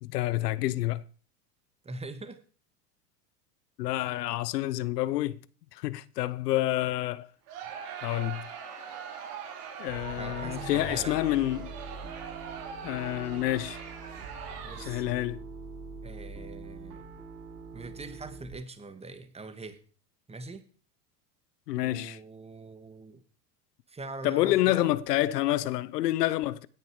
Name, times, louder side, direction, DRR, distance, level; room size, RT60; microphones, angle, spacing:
voice 1, 0.0-1.0 3.8-5.4 5.7-7.3 8.0-8.5 9.8-11.7 12.8-13.8 14.8-15.4 21.7-22.2 24.2-26.7, left 15 dB, 75° left, 1.0 m, -28 dB
voice 2, 1.8-2.4 3.9-4.1 10.2-11.5 14.6-15.0 16.0-17.1 17.7-19.8 20.3-20.7 21.8-23.2 23.9-24.9, right 3 dB, 10° right, 2.0 m, -43 dB
Crowd, 7.5-15.2, right 7 dB, 70° right, 4.7 m, -42 dB
Piano, 9.9-18.5, right 3 dB, 45° right, 8.0 m, -44 dB
sound 1, 10.4-11.3, left 6 dB, 35° left, 2.2 m, -43 dB
17.0 x 10.0 x 4.9 m
hypercardioid pair, 105°, 48 cm